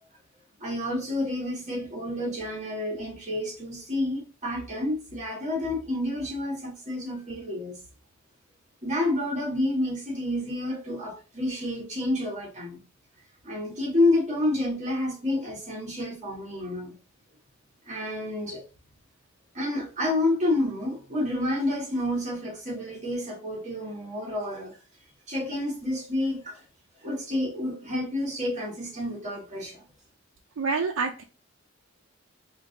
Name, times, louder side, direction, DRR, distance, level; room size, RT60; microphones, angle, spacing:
voice 1, 0.6-7.8 8.8-12.8 13.4-16.9 17.9-18.6 19.5-24.7 25.3-26.6 27.0-29.8, left 1 dB, 35° right, 1.6 m, -29 dB
voice 2, 30.6-31.2, right 4 dB, 90° right, 0.5 m, -27 dB
3.7 x 2.6 x 3.7 m
head